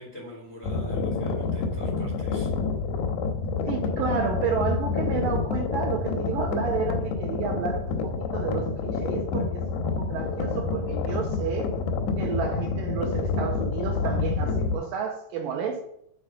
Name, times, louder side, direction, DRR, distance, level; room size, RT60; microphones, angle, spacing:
voice 1, 0.0-2.5, equal, 40° left, 1.5 m, -43 dB
sound 1, 0.6-14.8, left 4 dB, 85° left, 2.7 m, -28 dB
voice 2, 3.7-11.7 12.2-15.8, right 6 dB, 75° right, 2.2 m, -31 dB
7.1 x 4.3 x 6.6 m
omnidirectional pair, 4.4 m